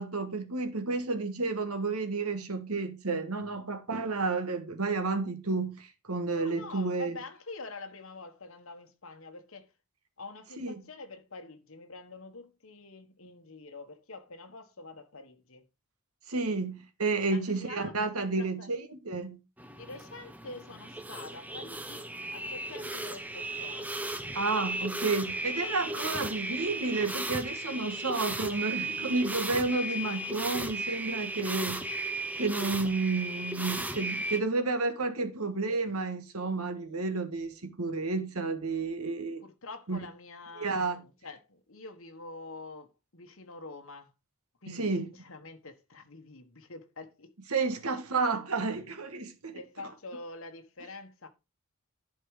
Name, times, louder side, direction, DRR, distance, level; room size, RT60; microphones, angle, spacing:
voice 1, 0.0-7.2 10.6-10.7 16.3-19.4 24.3-31.9 32.4-39.4 39.9-40.0 40.6-41.0 44.7-45.1 47.5-49.6, right 3 dB, 85° right, 1.5 m, -31 dB
voice 2, 6.4-9.7 10.2-15.6 17.1-18.7 19.8-24.2 39.4-44.1 44.6-47.3 49.5-51.3, left 3 dB, 65° left, 1.3 m, -46 dB
sound 1, 19.6-34.4, right 1 dB, 5° right, 0.7 m, -35 dB
11.0 x 4.6 x 4.8 m
head